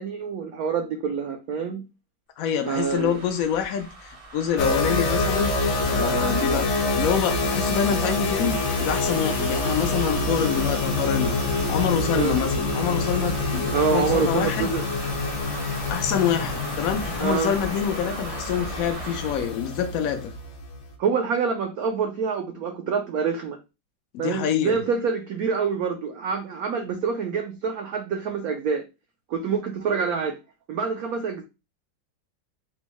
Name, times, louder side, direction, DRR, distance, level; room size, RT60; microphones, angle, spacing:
voice 1, 0.0-1.8 2.7-3.2 12.1-12.3 13.7-14.8 17.2-17.5 21.0-23.6 24.2-28.8 29.3-30.4 30.7-31.4, right 5 dB, 80° right, 0.8 m, -26 dB
voice 2, 2.4-5.5 5.9-6.7 7.0-14.7 15.9-20.3 24.1-24.8, left 8 dB, 85° left, 0.7 m, -26 dB
sound 1, 2.5-19.6, right 2 dB, 60° right, 0.3 m, -37 dB
sound 2, 4.6-20.9, left 3 dB, 70° left, 1.3 m, -26 dB
4.4 x 2.1 x 2.9 m
omnidirectional pair, 2.1 m